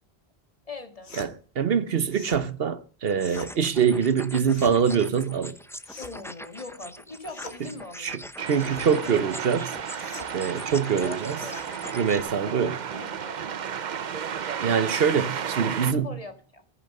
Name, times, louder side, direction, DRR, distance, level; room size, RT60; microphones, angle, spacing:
voice 1, 0.7-1.1 6.0-8.2 8.9-9.3 10.9-11.6 12.1-13.4 15.9-16.6, left 3 dB, 35° left, 1.8 m, -41 dB
sound 1, 1.0-1.3 2.1-2.4 3.2-3.5 4.4-4.8 5.8-6.3 7.3-7.6 8.6-8.9 9.9-10.3 11.4-11.7, left 4 dB, 85° left, 1.9 m, -43 dB
voice 2, 1.2-5.5 8.0-9.7 10.3-11.4 11.9-12.7 14.6-16.1, right 7 dB, 65° right, 1.0 m, -24 dB
sound 2, 3.1-12.2, equal, 5° left, 0.4 m, -43 dB
sound 3, 8.4-15.9, right 7 dB, 50° right, 0.7 m, -33 dB
13.0 x 10.0 x 5.4 m
omnidirectional pair, 1.1 m